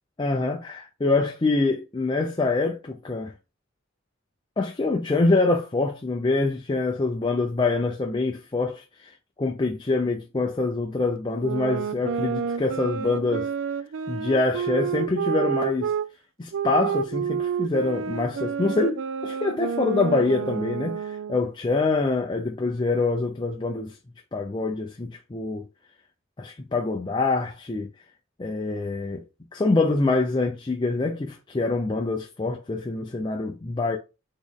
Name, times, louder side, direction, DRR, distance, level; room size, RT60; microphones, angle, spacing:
voice 1, 0.2-3.3 4.6-9.1 9.4-13.5 14.1-15.9 16.4-24.0 24.3-25.7 26.4-27.9 28.4-29.2 29.5-34.0, left 3 dB, 25° left, 0.5 m, -25 dB
sound 1, 11.4-16.1 16.5-21.5, right 7 dB, 80° right, 0.3 m, -29 dB
4.2 x 3.0 x 3.5 m
head